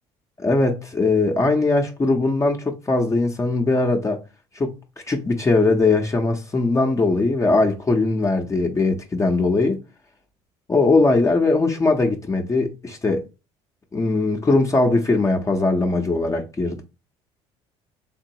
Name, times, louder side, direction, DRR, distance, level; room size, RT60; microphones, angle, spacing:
voice 1, 0.4-4.2 4.6-4.7 5.1-9.8 10.7-13.2 13.9-16.8, left 3 dB, 25° left, 0.8 m, -20 dB
3.6 x 2.9 x 2.8 m
supercardioid pair, 75°, 13 cm